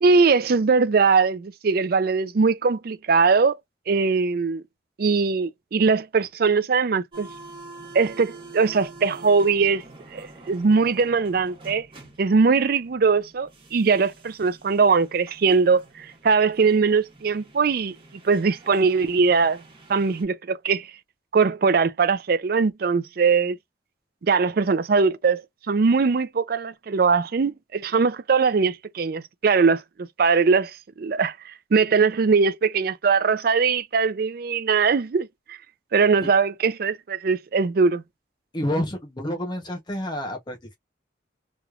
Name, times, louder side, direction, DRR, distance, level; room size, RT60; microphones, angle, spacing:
voice 1, 0.0-3.6 3.9-4.6 5.0-7.3 7.9-9.8 10.1-11.9 12.2-17.9 18.2-19.6 19.9-20.9 21.3-23.6 24.2-35.6 35.9-38.0, right 5 dB, 55° right, 0.4 m, -21 dB
sound 1, 7.1-20.2, right 3 dB, 30° right, 1.3 m, -46 dB
voice 2, 38.5-40.8, left 1 dB, 25° left, 0.8 m, -29 dB
3.1 x 3.0 x 2.4 m
head